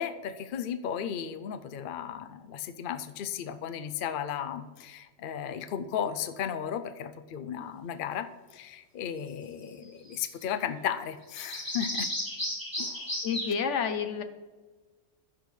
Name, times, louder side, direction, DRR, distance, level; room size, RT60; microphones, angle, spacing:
voice 1, 0.0-8.3 8.5-12.1 12.8-13.1, left 8 dB, 55° left, 10 dB, 0.7 m, -35 dB
sound 1, 9.8-10.1 10.4-10.5 11.4-13.5, left 1 dB, 15° left, 2.4 m, -33 dB
voice 2, 13.2-14.2, left 6 dB, 80° left, 9 dB, 1.1 m, -29 dB
15.5 x 6.2 x 3.2 m, 1.3 s
omnidirectional pair, 1.2 m